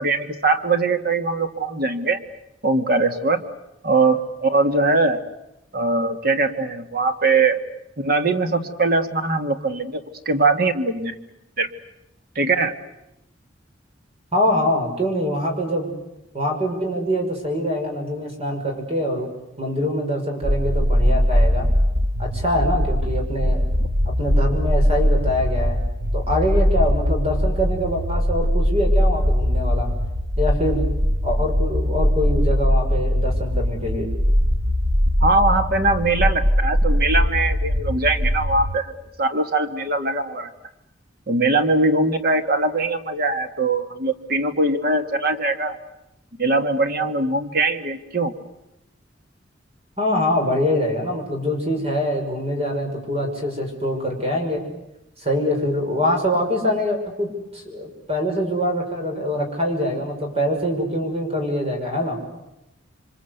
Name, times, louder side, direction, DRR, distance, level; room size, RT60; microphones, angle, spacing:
voice 1, 0.0-2.2 2.6-3.4 3.8-5.2 5.7-7.6 8.0-10.0 10.3-11.2 11.6-11.7 12.4-12.7 23.8-23.9 35.2-40.5 41.3-45.8 46.4-48.3, right 3 dB, 50° right, 7 dB, 1.9 m, -21 dB
voice 2, 14.3-15.9 16.3-19.3 19.6-21.7 22.2-23.7 24.2-25.8 26.1-29.9 30.4-30.9 31.2-34.1 50.0-54.6 55.2-57.3 57.5-62.2, left 1 dB, 30° right, 2 dB, 6.3 m, -24 dB
sound 1, 20.4-38.8, equal, 75° right, 1.6 m, -21 dB
28.0 x 25.0 x 8.2 m, 0.88 s
head